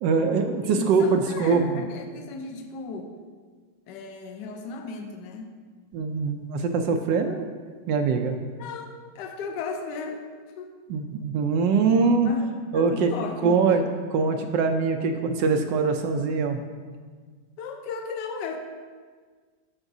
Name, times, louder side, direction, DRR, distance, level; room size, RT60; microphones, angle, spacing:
voice 1, 0.0-1.8 5.9-7.4 7.9-8.4 10.9-12.3 12.7-13.1 13.4-13.8 14.1-16.6, right 5 dB, 80° right, 5 dB, 1.2 m, -23 dB
voice 2, 0.6-3.1 3.9-5.5 8.6-10.3 10.6-10.7 12.2-12.5 12.7-13.6 17.6-18.6, left 4 dB, 70° left, 4 dB, 1.2 m, -35 dB
9.6 x 6.9 x 2.7 m, 1.5 s
omnidirectional pair, 2.0 m